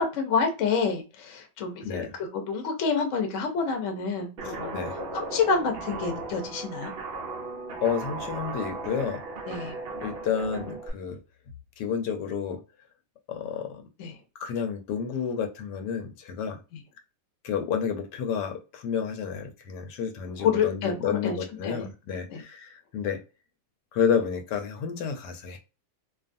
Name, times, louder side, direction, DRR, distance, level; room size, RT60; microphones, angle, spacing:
voice 1, 0.0-2.1 2.5-4.7 5.1-6.9 9.5-9.8 14.0-14.1 20.4-21.4 21.6-21.9 22.3-22.4, left 5 dB, 60° left, 4 dB, 0.9 m, -28 dB
voice 2, 1.8-2.1 4.4-5.0 7.8-9.2 10.0-11.2 11.8-12.6 13.3-13.8 14.4-16.6 17.4-23.2 23.9-25.6, left 7 dB, 80° left, 5 dB, 1.2 m, -30 dB
Guitar, 4.4-10.9, right 3 dB, 85° right, 0.5 m, -36 dB
2.6 x 2.4 x 2.5 m, 0.30 s
omnidirectional pair, 1.8 m